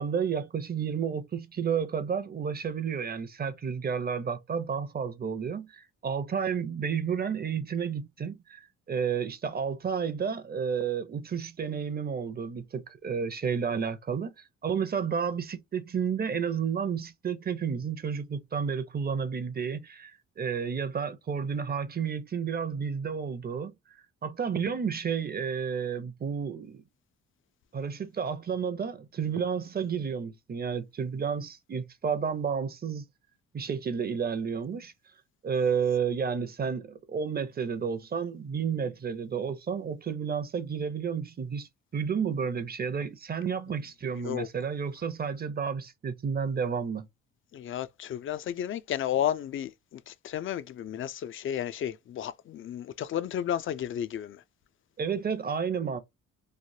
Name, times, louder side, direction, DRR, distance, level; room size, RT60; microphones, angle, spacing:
voice 1, 0.0-14.3 14.6-23.7 24.2-26.8 27.7-33.0 33.5-34.9 35.4-47.1 55.0-56.0, right 6 dB, 30° right, 0.6 m, -31 dB
voice 2, 47.5-54.4, left 10 dB, 45° left, 0.4 m, -32 dB
3.2 x 2.1 x 2.6 m
cardioid pair, 90°, 30 cm